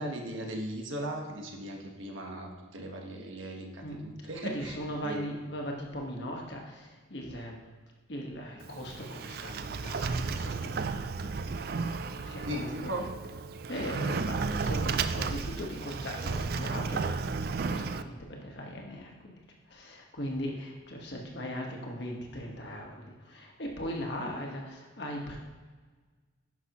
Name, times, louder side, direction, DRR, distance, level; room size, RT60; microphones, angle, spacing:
voice 1, 0.0-4.8 5.0-5.3 12.4-13.1, right 1 dB, 85° right, 1 dB, 1.4 m, -38 dB
voice 2, 3.8-4.1 4.4-7.6 8.1-12.9 13.7-19.4 19.7-25.4, equal, 60° left, 0 dB, 1.4 m, -39 dB
Sliding door, 8.6-18.0, right 4 dB, 50° right, 0.3 m, -33 dB
11.0 x 6.1 x 3.0 m, 1.4 s
head